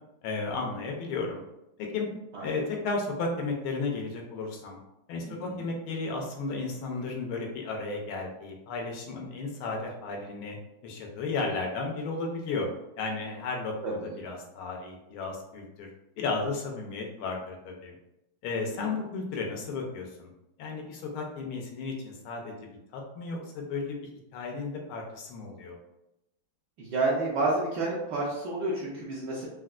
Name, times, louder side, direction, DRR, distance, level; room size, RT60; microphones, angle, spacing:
voice 1, 0.2-1.4 1.9-2.1 2.4-4.8 5.1-10.6 10.8-12.7 13.0-15.9 16.2-17.9 18.4-20.3 20.6-24.0 24.3-25.8, left 3 dB, 90° left, 1 dB, 1.5 m, -34 dB
voice 2, 5.2-5.7 13.8-14.2 18.6-18.9 26.8-29.5, right 2 dB, 70° right, -6 dB, 1.1 m, -30 dB
4.3 x 2.1 x 2.4 m, 0.87 s
omnidirectional pair, 2.3 m